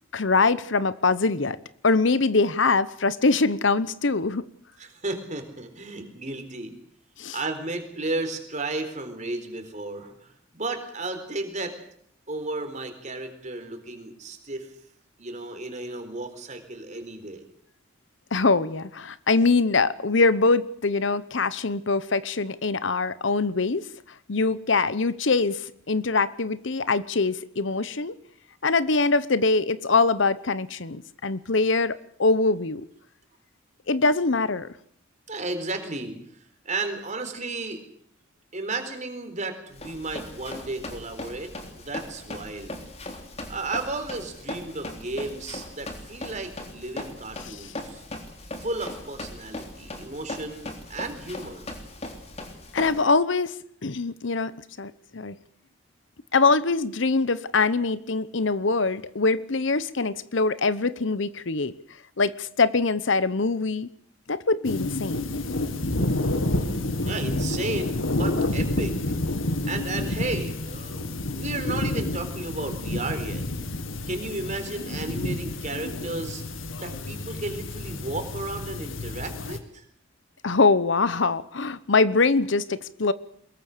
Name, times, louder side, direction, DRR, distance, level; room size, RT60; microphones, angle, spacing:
voice 1, 0.1-1.6 1.8-4.4 7.2-7.4 18.3-23.9 24.3-28.1 28.6-32.8 33.9-34.7 47.4-47.7 52.7-53.5 53.8-54.5 54.8-55.4 56.3-61.7 62.2-63.9 64.3-65.2 80.4-83.1, left 3 dB, 65° left, 0.9 m, -23 dB
voice 2, 4.8-6.8 7.3-11.7 12.3-14.7 15.2-17.4 35.3-36.2 36.6-37.8 38.5-42.8 43.5-48.0 48.6-51.7 67.0-69.0 69.6-73.4 74.1-76.4 76.8-79.8, right 2 dB, 40° right, 4.1 m, -33 dB
Run, 39.7-53.0, left 1 dB, 30° left, 3.5 m, -39 dB
sound 1, 64.6-79.6, left 2 dB, 80° left, 2.1 m, -29 dB
23.0 x 21.5 x 6.8 m
head